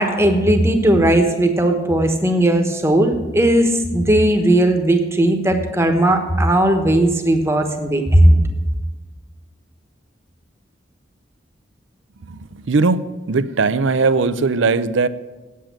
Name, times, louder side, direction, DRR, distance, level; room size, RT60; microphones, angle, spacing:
voice 1, 0.0-8.4, right 1 dB, 15° right, 5 dB, 1.1 m, -16 dB
voice 2, 12.7-13.0 13.3-15.1, right 4 dB, 80° right, 14 dB, 0.6 m, -18 dB
8.9 x 8.4 x 9.0 m, 1.2 s
head